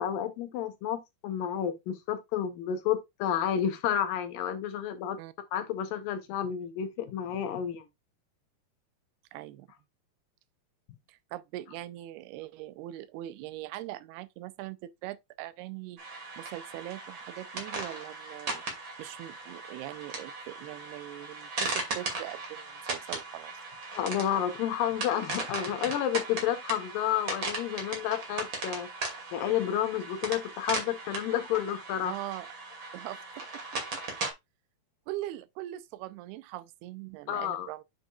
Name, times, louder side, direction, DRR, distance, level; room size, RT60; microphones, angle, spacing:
voice 1, 0.0-5.2 5.5-7.8 24.0-28.9 29.3-32.1 37.3-37.7, left 10 dB, 75° left, 2.3 m, -30 dB
voice 2, 9.3-9.7 11.1-18.6 19.0-23.5 32.0-32.5 32.9-34.0 35.1-37.8, right 15 dB, 85° right, 2.6 m, -41 dB
sound 1, 16.0-34.3, right 3 dB, 35° right, 2.6 m, -38 dB
8.3 x 6.9 x 2.4 m
omnidirectional pair, 4.5 m